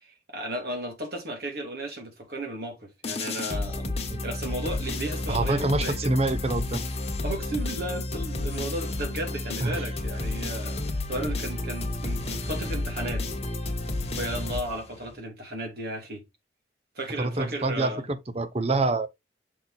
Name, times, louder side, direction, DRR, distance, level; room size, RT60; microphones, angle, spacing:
voice 1, 0.0-3.9 4.2-6.1 7.2-13.2 14.2-16.2 16.9-18.0, right 1 dB, 60° right, 2.9 m, -34 dB
sound 1, 3.0-15.1, left 2 dB, 35° left, 1.4 m, -31 dB
voice 2, 5.3-6.8 9.6-9.8 17.2-19.1, right 2 dB, 35° right, 0.8 m, -26 dB
6.5 x 4.0 x 4.1 m
head